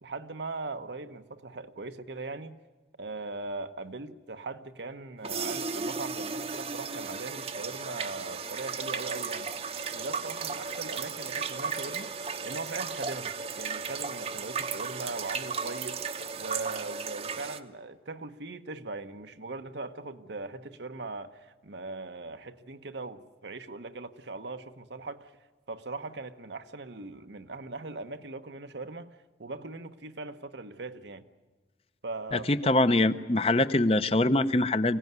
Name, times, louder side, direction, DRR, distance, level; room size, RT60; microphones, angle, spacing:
voice 1, 0.0-2.6 3.0-9.5 9.9-25.3 25.7-31.2 32.0-32.5, right 3 dB, 80° right, 9 dB, 1.1 m, -40 dB
sound 1, 5.2-17.6, right 5 dB, 35° right, 0.8 m, -35 dB
voice 2, 32.3-35.0, left 2 dB, 35° left, 12 dB, 0.7 m, -24 dB
24.5 x 16.5 x 9.5 m, 1.4 s
head